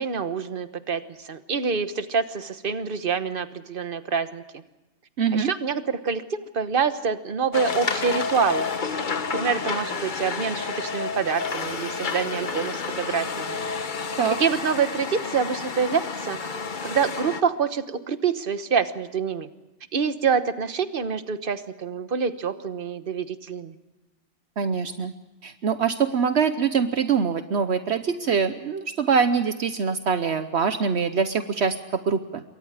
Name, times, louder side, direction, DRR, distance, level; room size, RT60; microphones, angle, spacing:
voice 1, 0.0-4.6 5.3-8.7 9.3-13.6 14.4-16.6 16.8-19.5 19.9-23.7, right 6 dB, 50° right, 10 dB, 1.4 m, -26 dB
voice 2, 5.2-5.5 14.2-14.4 24.6-25.1 25.4-32.4, right 6 dB, 70° right, 9 dB, 1.2 m, -24 dB
sound 1, 7.5-17.4, left 4 dB, 45° left, 1.2 m, -30 dB
27.5 x 23.0 x 4.9 m, 1.0 s
omnidirectional pair, 1.2 m